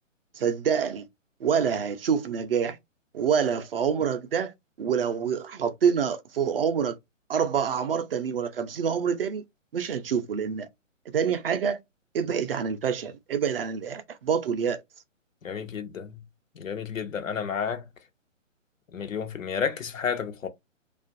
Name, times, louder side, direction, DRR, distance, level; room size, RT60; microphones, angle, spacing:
voice 1, 0.3-1.1 1.4-2.8 3.1-7.0 7.3-9.4 9.7-10.7 11.1-11.8 12.1-14.8, right 7 dB, 50° right, 0.4 m, -26 dB
voice 2, 15.4-16.2 16.6-17.8 18.9-20.5, left 7 dB, 80° left, 0.7 m, -31 dB
2.5 x 2.3 x 2.4 m
figure-of-eight pair, 140°, 39 cm